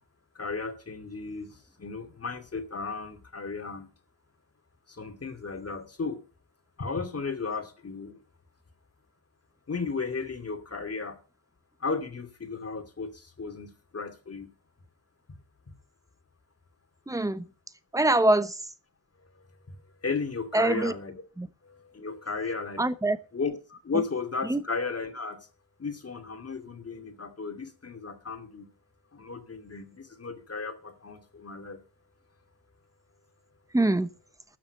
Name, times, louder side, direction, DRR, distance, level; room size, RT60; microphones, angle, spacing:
voice 1, 0.4-1.5 1.8-3.9 5.0-6.2 6.8-8.2 9.7-11.1 11.8-13.1 13.4-14.5 20.0-21.2 21.9-22.8 23.3-25.4 25.8-28.7 29.1-31.8, left 4 dB, 30° left, 2.5 m, -34 dB
voice 2, 17.1-17.4 17.9-18.5 20.5-20.9 21.4-21.5 22.8-23.2 24.5-24.6 33.7-34.1, right 2 dB, 5° right, 0.9 m, -23 dB
13.0 x 7.3 x 6.6 m
cardioid pair, 110°, 46 cm